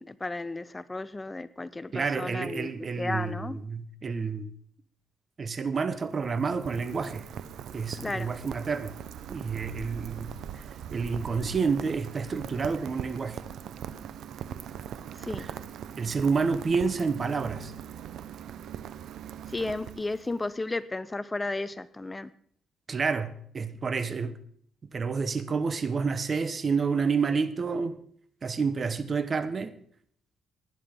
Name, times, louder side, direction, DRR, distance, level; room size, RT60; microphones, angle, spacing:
voice 1, 0.0-2.7 3.0-3.6 8.0-8.3 15.2-15.4 19.5-22.3, left 2 dB, 20° left, 0.5 m, -33 dB
voice 2, 1.9-4.5 5.4-7.3 7.7-8.9 9.3-10.6 10.9-13.4 15.4-15.5 16.0-17.7 22.9-24.4 24.9-28.0 28.4-29.7, right 5 dB, 40° right, 1.0 m, -29 dB
Rain, 5.7-20.5, right 9 dB, 75° right, 0.7 m, -41 dB
19.5 x 9.5 x 3.7 m
cardioid pair, 90°, 0 cm